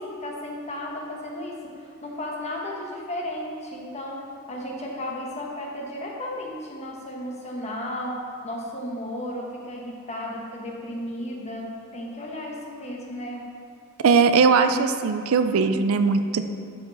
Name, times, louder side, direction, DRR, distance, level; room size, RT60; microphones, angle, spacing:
voice 1, 0.0-13.5, left 1 dB, 30° left, -1 dB, 1.2 m, -34 dB
voice 2, 14.0-16.4, right 5 dB, 70° right, 9 dB, 0.4 m, -19 dB
11.5 x 4.8 x 4.0 m, 2.5 s
head